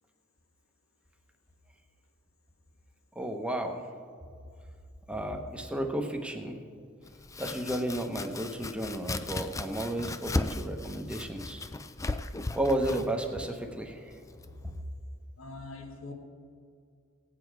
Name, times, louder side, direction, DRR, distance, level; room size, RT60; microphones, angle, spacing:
voice 1, 3.2-3.8 5.1-6.6 7.4-11.6 12.5-14.0, right 1 dB, 5° right, 3 dB, 0.9 m, -32 dB
Domestic sounds home sounds, 7.0-14.8, left 2 dB, 15° left, 0.4 m, -37 dB
voice 2, 15.4-16.1, left 2 dB, 85° left, 3 dB, 1.5 m, -43 dB
17.5 x 8.7 x 4.7 m, 2.3 s
head